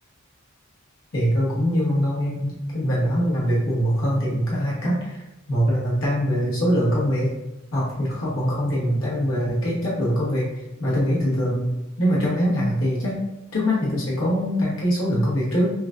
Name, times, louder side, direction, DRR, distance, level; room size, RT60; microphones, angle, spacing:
voice 1, 1.1-5.2 5.5-7.3 7.7-10.5 10.8-11.7 12.0-13.2 13.5-15.7, equal, 70° left, -6 dB, 1.1 m, -23 dB
5.9 x 2.3 x 2.5 m, 0.92 s
head